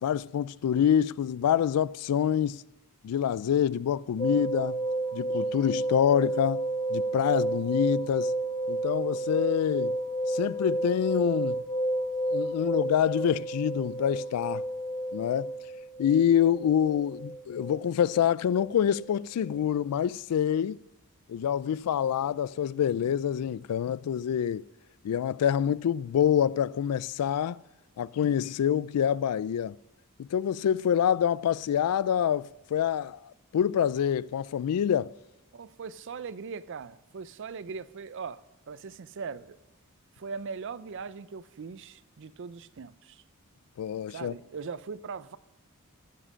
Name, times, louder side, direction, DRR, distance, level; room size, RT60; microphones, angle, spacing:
voice 1, 0.0-2.6 3.0-4.8 5.1-6.6 6.9-8.3 8.7-10.0 10.3-11.6 12.3-14.6 15.1-15.5 16.0-20.8 21.3-24.6 25.0-27.6 28.0-29.8 30.2-35.1 43.8-44.3, left 9 dB, 85° left, 0.3 m, -26 dB
sound 1, 4.2-19.1 19.4-19.5, right 1 dB, 30° left, 0.9 m, -31 dB
voice 2, 35.5-38.4 38.7-39.6 40.2-43.2 44.1-45.4, right 5 dB, 55° right, 0.4 m, -40 dB
15.0 x 7.5 x 6.2 m
head